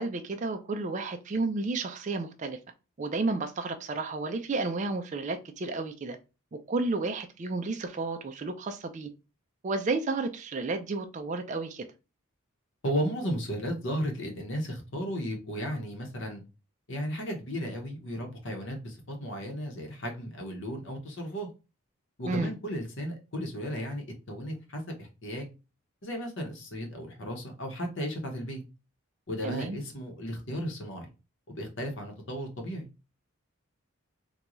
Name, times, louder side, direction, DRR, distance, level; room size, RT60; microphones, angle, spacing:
voice 1, 0.0-2.6 3.0-6.2 6.5-9.1 9.6-11.9 22.3-22.5 29.4-29.8, right 3 dB, 35° right, 6 dB, 0.3 m, -32 dB
voice 2, 12.8-16.4 16.9-21.5 22.2-25.5 26.0-28.6 29.3-31.1 31.6-32.9, equal, 55° left, 2 dB, 0.9 m, -34 dB
3.8 x 2.2 x 3.0 m, 0.29 s
head